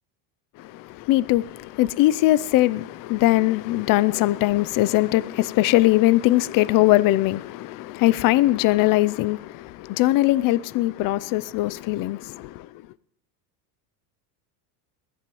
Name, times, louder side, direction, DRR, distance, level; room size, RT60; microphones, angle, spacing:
voice 1, 0.6-12.7, left 17 dB, 45° left, 0.5 m, -21 dB
21.0 x 15.0 x 3.1 m
supercardioid pair, 120°, 49 cm